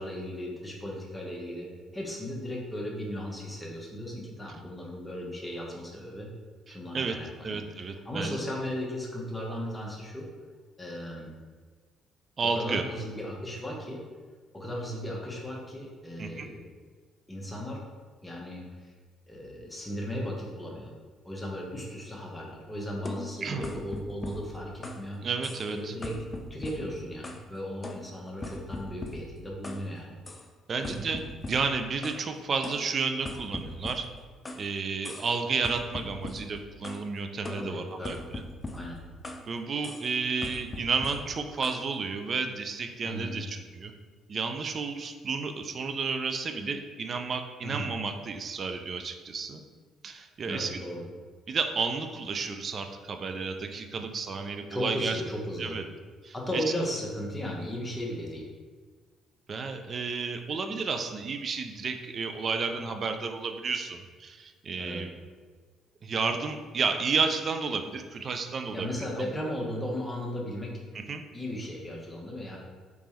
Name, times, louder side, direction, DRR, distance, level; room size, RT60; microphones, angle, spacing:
voice 1, 0.0-1.7 1.9-6.3 6.7-7.6 8.0-10.2 10.8-11.3 12.5-14.0 14.5-16.6 17.3-17.8 18.2-18.9 19.3-20.9 21.2-25.2 25.7-26.2 26.5-30.1 30.8-31.0 37.5-38.2 38.7-39.0 43.0-43.4 47.6-47.9 50.5-51.0 54.7-55.8 56.3-58.5 64.8-65.1 68.7-70.7 71.3-72.6, equal, 10° left, -2 dB, 1.0 m, -36 dB
voice 2, 6.7-7.2 7.4-8.4 12.4-12.8 16.2-16.5 23.4-23.7 25.2-25.9 30.7-34.1 34.6-38.4 39.5-43.9 44.3-49.6 50.0-50.8 51.5-55.2 55.6-55.8 56.2-56.6 59.5-65.1 66.0-68.9 69.2-69.3 70.9-71.2, right 4 dB, 45° right, 6 dB, 0.4 m, -32 dB
sound 1, 23.1-25.1 25.4-25.8 26.0-27.5 27.8-29.9 30.3-30.5 30.8-32.3 32.6-34.7 35.0-35.4 35.6-37.1 37.5-39.5 39.8-40.1 40.4-41.9, left 2 dB, 25° left, 0.4 m, -41 dB
3.4 x 3.1 x 3.0 m, 1.5 s
hypercardioid pair, 50°, 0 cm